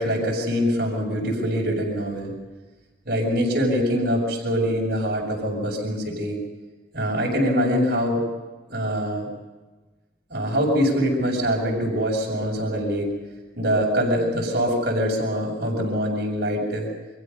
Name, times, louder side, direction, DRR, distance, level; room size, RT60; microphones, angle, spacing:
voice 1, 0.0-2.3 3.0-6.4 6.9-8.2 8.7-9.3 10.3-13.1 13.6-16.8, equal, 60° right, -3 dB, 6.4 m, -24 dB
30.0 x 24.0 x 5.4 m, 1.2 s
head